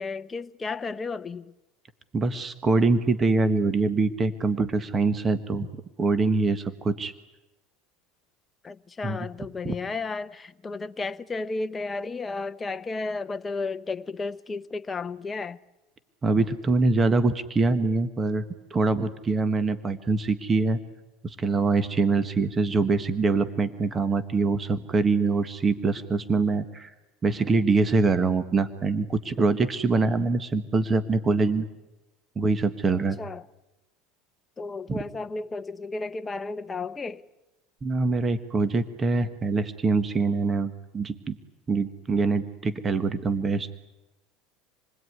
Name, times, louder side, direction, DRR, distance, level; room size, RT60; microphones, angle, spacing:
voice 1, 0.0-1.5 8.6-15.6 32.9-33.5 34.6-37.2, left 3 dB, 15° left, 0.9 m, -33 dB
voice 2, 2.1-5.7 6.0-7.1 9.0-9.3 9.6-9.8 16.2-18.4 18.7-20.8 21.2-26.9 27.2-31.7 32.3-33.2 34.9-35.0 37.8-41.4 41.7-43.7, right 3 dB, 20° right, 1.4 m, -24 dB
27.5 x 20.5 x 9.5 m
supercardioid pair, 130°, 0 cm